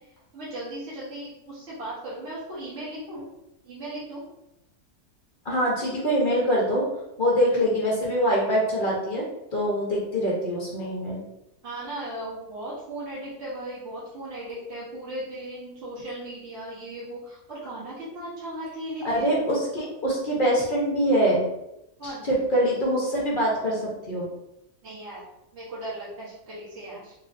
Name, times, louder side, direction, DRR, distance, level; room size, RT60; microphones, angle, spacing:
voice 1, 0.3-3.2 3.6-4.2 11.6-19.5 22.0-22.3 24.8-25.2 25.5-27.1, right 1 dB, 45° right, -9 dB, 1.3 m, -37 dB
voice 2, 5.4-6.8 7.2-9.2 9.5-11.2 19.0-21.5 22.0-24.3, equal, 40° left, -4 dB, 0.8 m, -24 dB
3.7 x 2.8 x 2.5 m, 0.88 s
omnidirectional pair, 1.7 m